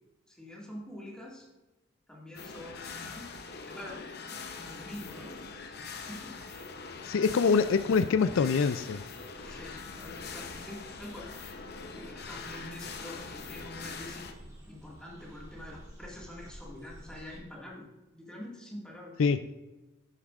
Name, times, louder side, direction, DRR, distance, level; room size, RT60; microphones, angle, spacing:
voice 1, 0.3-1.5 2.1-4.0 4.3-5.3 5.7-6.8 9.4-11.3 11.9-14.3 14.7-17.9 18.1-19.2, left 1 dB, 5° left, -4 dB, 1.9 m, -46 dB
sound 1, 2.4-14.3, left 5 dB, 50° left, 0.7 m, -43 dB
voice 2, 7.0-9.0 19.2-19.4, left 5 dB, 70° left, 11 dB, 0.4 m, -25 dB
sound 2, 9.4-17.4, equal, 15° right, 2.0 m, -51 dB
11.0 x 8.6 x 2.4 m, 1.1 s
head